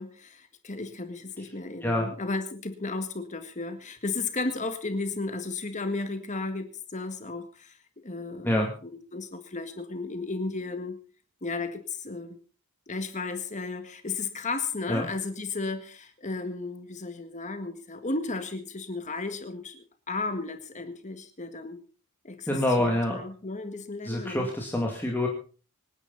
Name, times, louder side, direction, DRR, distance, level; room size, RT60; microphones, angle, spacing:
voice 1, 0.0-7.8 8.0-11.0 11.4-12.3 12.9-21.8 22.2-24.5, left 3 dB, 35° left, 7 dB, 1.8 m, -34 dB
voice 2, 22.5-23.2 24.0-25.3, left 1 dB, 10° left, -1 dB, 2.4 m, -26 dB
25.0 x 10.0 x 4.1 m, 0.38 s
head